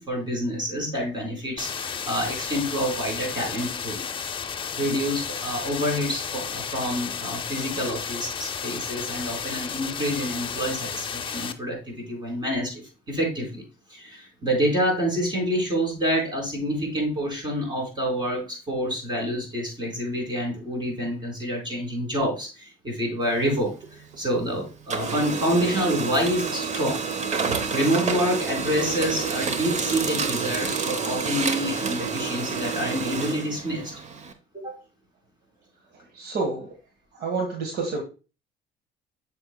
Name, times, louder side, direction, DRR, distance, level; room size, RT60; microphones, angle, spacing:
voice 1, 0.0-4.1 4.8-13.6 13.9-27.1 27.7-33.9 34.6-34.8, equal, 25° right, 4.4 m, -27 dB
sound 1, 1.6-11.5, left 6 dB, 30° left, 0.6 m, -33 dB
Printer, 23.2-24.5 24.8-34.3, right 5 dB, 45° right, 1.0 m, -29 dB
voice 2, 35.9-36.8 37.1-38.0, right 3 dB, 70° right, 1.6 m, -29 dB
8.2 x 6.9 x 2.2 m
cardioid pair, 110°, 17 cm